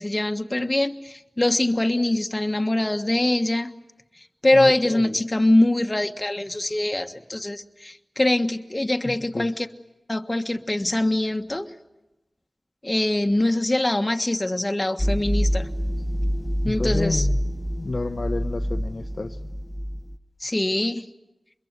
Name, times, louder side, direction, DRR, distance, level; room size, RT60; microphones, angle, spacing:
voice 1, 0.0-3.7 4.4-9.7 10.1-11.7 12.8-15.7 16.6-17.3 20.4-21.0, left 1 dB, 30° left, 6 dB, 1.5 m, -23 dB
voice 2, 4.5-5.2 9.0-9.7 16.6-17.4 17.8-19.4, left 2 dB, 65° left, 6 dB, 0.9 m, -30 dB
sound 1, 15.0-20.2, equal, ahead, 1.6 m, -26 dB
25.0 x 22.0 x 9.6 m, 0.96 s
cardioid pair, 40°, 0 cm